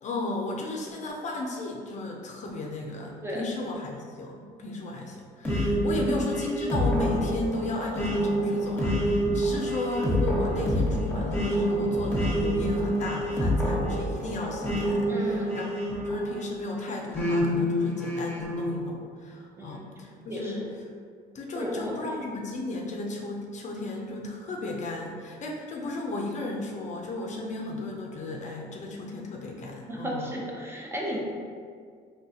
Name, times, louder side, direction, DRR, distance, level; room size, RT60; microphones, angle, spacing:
voice 1, 0.0-20.7 21.3-30.4, left 2 dB, 45° left, 0 dB, 0.5 m, -34 dB
sound 1, 5.4-16.5 17.1-18.7, equal, 10° left, 1.2 m, -27 dB
voice 2, 15.1-15.6 19.6-19.9 20.3-20.6 21.5-21.9 29.9-31.3, right 1 dB, 15° right, -3 dB, 0.7 m, -34 dB
3.9 x 3.2 x 2.7 m, 2.1 s
cardioid pair, 110°, 17 cm